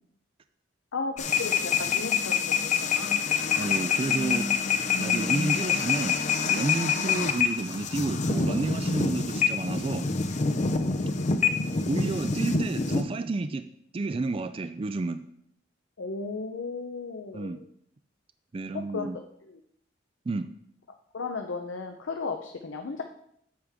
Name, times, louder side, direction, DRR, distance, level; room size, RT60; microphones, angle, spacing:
voice 1, 0.9-2.4 2.8-3.2 7.0-7.1 16.0-17.6 18.9-19.1 19.5-19.6 21.1-23.0, left 4 dB, 85° left, 4 dB, 0.7 m, -35 dB
sound 1, 1.2-13.0, left 6 dB, 40° left, 0.6 m, -26 dB
voice 2, 3.6-4.5 5.0-10.1 11.9-13.6 13.9-15.2 17.3-17.6 18.5-19.2 20.3-20.5, right 3 dB, 30° right, 10 dB, 0.3 m, -30 dB
8.7 x 7.4 x 3.5 m, 0.70 s
head